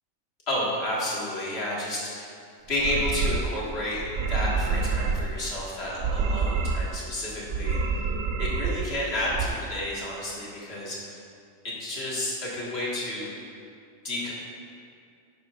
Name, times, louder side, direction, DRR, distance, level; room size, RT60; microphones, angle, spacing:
voice 1, 0.5-2.4 2.7-8.0 8.4-11.2 11.6-13.3 14.0-14.3, left 1 dB, 50° left, -6 dB, 2.1 m, -31 dB
sound 1, 2.7-3.6 3.9-5.3 5.9-7.0 7.5-8.9 9.2-9.5, right 4 dB, 65° right, 0.8 m, -27 dB
11.0 x 9.3 x 2.5 m, 2.3 s
omnidirectional pair, 1.4 m